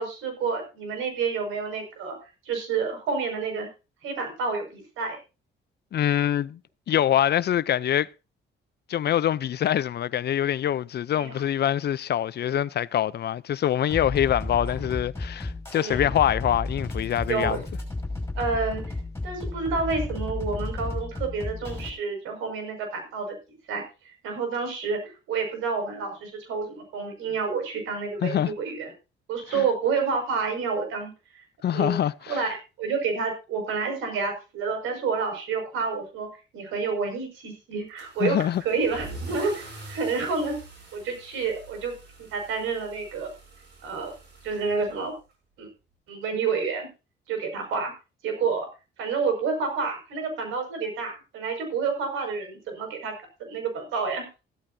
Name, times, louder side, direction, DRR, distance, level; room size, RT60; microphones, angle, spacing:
voice 1, 0.0-2.2 2.5-3.7 4.0-5.2 11.1-11.4 15.8-16.1 17.3-17.6 18.4-18.8 19.2-23.4 23.7-23.8 24.2-28.9 29.3-31.4 31.7-32.0 32.3-36.3 36.5-38.4 38.6-40.6 40.9-41.9 42.2-43.3 43.8-44.1 44.4-45.1 45.6-45.7 46.1-46.9 47.3-47.9 48.2-48.7 49.0-53.1 53.4-54.3, right 5 dB, 90° right, 5.9 m, -29 dB
voice 2, 5.9-6.6 6.9-8.1 8.9-17.6 28.2-28.5 29.5-29.6 31.6-32.4 38.2-38.6, left 10 dB, 55° left, 0.6 m, -24 dB
sound 1, 13.9-21.9, left 2 dB, 15° left, 5.9 m, -33 dB
Car / Engine starting / Accelerating revving vroom, 38.0-45.3, right 2 dB, 60° right, 7.5 m, -44 dB
15.5 x 13.5 x 2.7 m
cardioid pair, 90°, 20 cm